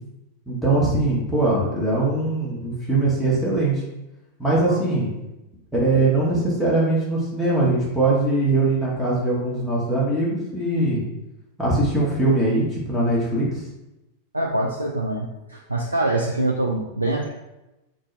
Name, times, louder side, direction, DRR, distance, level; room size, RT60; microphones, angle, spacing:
voice 1, 0.5-3.8 4.4-5.1 5.7-11.0 11.6-13.6, right 2 dB, ahead, -8 dB, 1.1 m, -21 dB
voice 2, 14.3-17.3, right 2 dB, 80° right, -1 dB, 0.3 m, -24 dB
3.9 x 2.5 x 3.2 m, 0.97 s
figure-of-eight pair, 90°, 0 cm